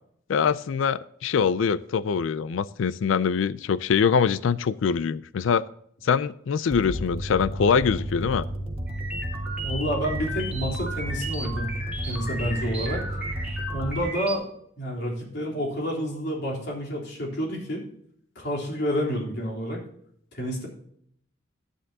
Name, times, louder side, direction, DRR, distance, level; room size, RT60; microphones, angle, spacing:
voice 1, 0.3-5.7 6.0-8.5, left 6 dB, 80° left, 17 dB, 0.4 m, -23 dB
sound 1, 6.7-14.0, right 1 dB, 30° right, 1.4 m, -32 dB
sound 2, 8.9-14.4, right 1 dB, 5° right, 2.2 m, -35 dB
voice 2, 9.6-13.0 13.7-14.4 14.8-17.8 18.4-19.8 20.3-20.7, equal, 60° left, -2 dB, 3.5 m, -29 dB
12.0 x 9.8 x 2.8 m, 0.67 s
head